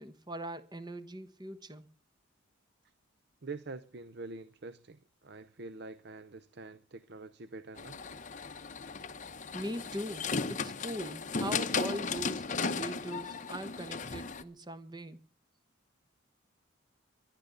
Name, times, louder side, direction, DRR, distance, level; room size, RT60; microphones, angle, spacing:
voice 1, 0.0-1.9 9.5-15.2, equal, 20° right, 1.0 m, -41 dB
voice 2, 3.4-8.0, right 3 dB, 55° right, 0.6 m, -45 dB
sound 1, 7.8-14.4, left 4 dB, 35° left, 0.7 m, -36 dB
23.0 x 11.5 x 3.9 m
head